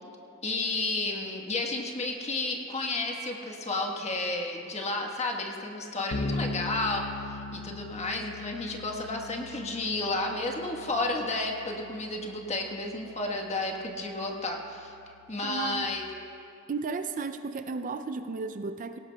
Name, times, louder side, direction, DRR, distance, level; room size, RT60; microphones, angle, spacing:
voice 1, 0.4-14.9 15.3-16.1, left 2 dB, 30° left, 1 dB, 1.3 m, -32 dB
Bass guitar, 6.1-15.8, left 2 dB, 55° left, 0.7 m, -40 dB
voice 2, 15.4-15.9 16.7-19.0, right 4 dB, 40° right, 9 dB, 0.4 m, -34 dB
18.5 x 17.5 x 2.3 m, 2.7 s
head